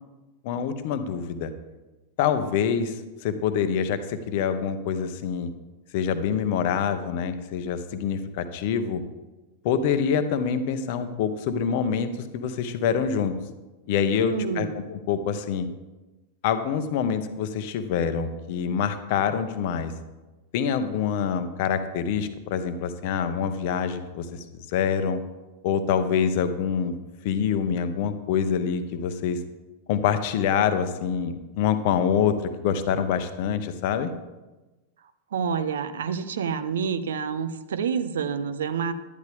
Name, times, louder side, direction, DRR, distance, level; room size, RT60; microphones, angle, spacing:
voice 1, 0.4-1.5 2.2-5.5 5.9-9.0 9.6-13.4 13.9-15.7 16.4-19.9 20.5-25.2 25.6-26.9 27.2-29.4 29.9-34.1, left 7 dB, 50° left, 10 dB, 0.9 m, -26 dB
voice 2, 14.2-14.8 35.3-38.9, right 6 dB, 65° right, 12 dB, 0.6 m, -28 dB
12.0 x 10.5 x 3.5 m, 1.1 s
figure-of-eight pair, 90°, 0 cm